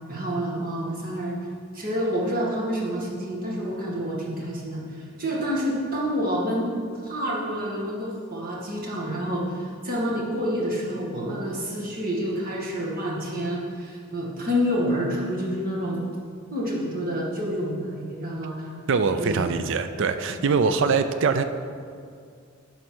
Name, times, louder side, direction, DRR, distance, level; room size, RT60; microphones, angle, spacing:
voice 1, 0.1-1.4 1.7-6.8 7.0-16.0 16.5-18.7 19.2-19.4, equal, 40° right, -4 dB, 1.9 m, -28 dB
voice 2, 18.9-21.4, right 5 dB, 60° right, 10 dB, 0.4 m, -23 dB
11.0 x 4.1 x 6.2 m, 2.2 s
head